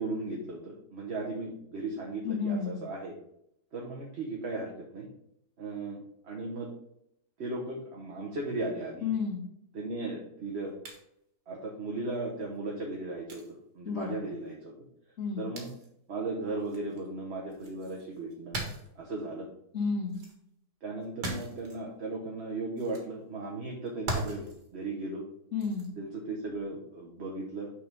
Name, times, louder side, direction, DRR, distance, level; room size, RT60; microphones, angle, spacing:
voice 1, 0.0-3.1 3.7-5.1 5.6-6.7 7.4-9.1 9.7-10.7 11.5-13.4 13.7-14.7 15.4-15.7 16.1-18.6 19.0-19.5 20.8-24.5 24.7-25.2 26.0-27.7, right 2 dB, 45° right, -2 dB, 1.2 m, -36 dB
voice 2, 2.2-2.9 9.0-9.5 13.8-14.3 15.2-15.5 19.7-20.2 25.5-26.0, left 5 dB, 50° left, -1 dB, 2.2 m, -32 dB
sound 1, 10.9-11.0 12.5-12.6 13.3-13.5 15.6-15.9 16.6-17.1 17.5-19.0 20.1-20.4 21.0-21.8 22.8-23.1 23.9-24.7 25.6-25.9 26.4-26.6, right 2 dB, 85° right, 2.1 m, -39 dB
6.0 x 4.8 x 5.2 m, 0.76 s
omnidirectional pair, 1.7 m